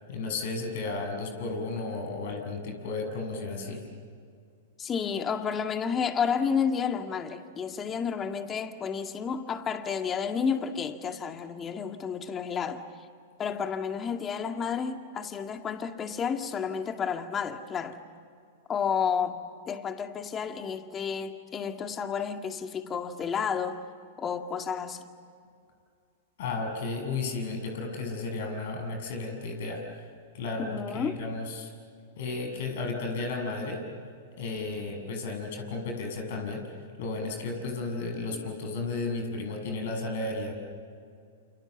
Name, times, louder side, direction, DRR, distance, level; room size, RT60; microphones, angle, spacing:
voice 1, 0.1-3.8 26.4-29.8 30.3-31.7 32.2-33.9 34.4-36.6 37.0-40.5, left 3 dB, 60° left, 5 dB, 6.8 m, -33 dB
voice 2, 4.8-12.8 13.4-18.0 18.7-23.8 24.2-25.0 30.6-31.2, left 6 dB, 25° left, 6 dB, 2.1 m, -31 dB
29.5 x 28.5 x 7.2 m, 2.3 s
figure-of-eight pair, 105°, 0 cm